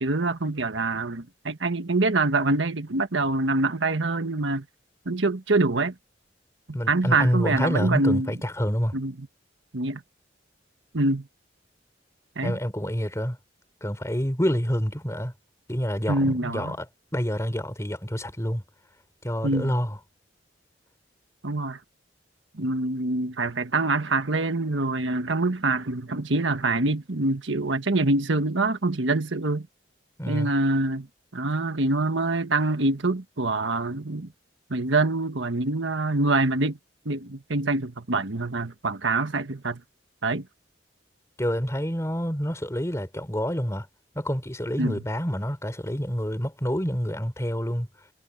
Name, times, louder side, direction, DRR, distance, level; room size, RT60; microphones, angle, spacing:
voice 1, 0.0-4.6 5.0-5.9 6.7-8.3 8.9-9.3 9.7-10.0 10.9-11.3 12.4-12.6 16.1-16.7 19.4-19.7 21.4-21.8 22.5-29.7 30.3-31.1 31.3-34.3 34.7-36.8 37.0-39.8 40.2-40.5 44.8-45.0, right 2 dB, 85° right, 1.4 m, -25 dB
voice 2, 6.7-8.9 12.4-13.4 13.8-15.3 15.7-16.9 17.1-18.6 19.2-20.0 30.2-30.5 41.4-43.9 44.2-47.9, equal, 15° left, 4.0 m, -27 dB
head